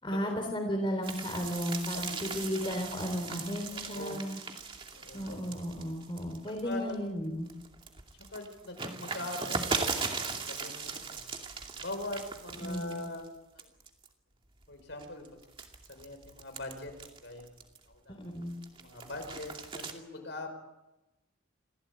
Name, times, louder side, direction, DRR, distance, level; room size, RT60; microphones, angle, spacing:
voice 1, 0.0-4.4 5.1-7.5 12.6-12.9 18.1-18.5, equal, 25° left, 4 dB, 3.5 m, -34 dB
sound 1, 1.0-6.9 7.4-13.3 13.6-14.1 14.6-17.9 18.4-19.9, right 4 dB, 25° right, 2.5 m, -38 dB
voice 2, 1.9-2.7 3.7-4.2 4.9-5.6 6.6-6.9 8.3-11.2 11.8-13.7 14.7-15.3 15.9-17.6 17.9-18.2 18.7-20.5, left 2 dB, 65° left, 5 dB, 5.7 m, -42 dB
27.5 x 17.0 x 8.9 m, 0.98 s
head